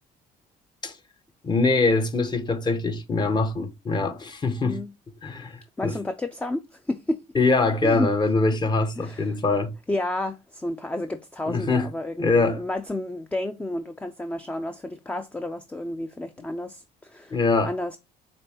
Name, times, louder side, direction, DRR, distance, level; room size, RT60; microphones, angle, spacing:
voice 1, 1.4-4.8 5.2-5.9 7.3-9.7 11.5-11.9 12.2-12.6 17.3-17.7, left 3 dB, 25° left, 0.7 m, -23 dB
voice 2, 5.8-7.2 7.8-8.1 9.0-9.4 9.9-18.0, left 1 dB, 10° left, 0.3 m, -31 dB
5.2 x 3.5 x 2.8 m
cardioid pair, 110°, 17 cm